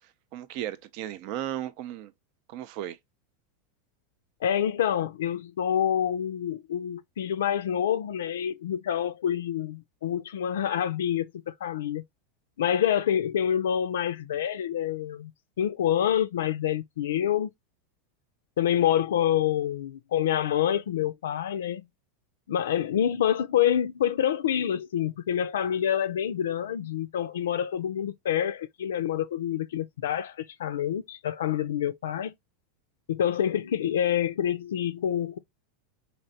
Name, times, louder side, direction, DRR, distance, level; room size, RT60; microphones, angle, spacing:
voice 1, 0.3-2.1 2.5-3.0, right 12 dB, 60° right, 0.5 m, -35 dB
voice 2, 4.4-12.0 12.6-15.3 15.6-17.5 18.6-21.8 22.5-32.3 33.1-35.4, left 10 dB, 85° left, 0.3 m, -27 dB
4.1 x 3.2 x 2.7 m
hypercardioid pair, 115°, 0 cm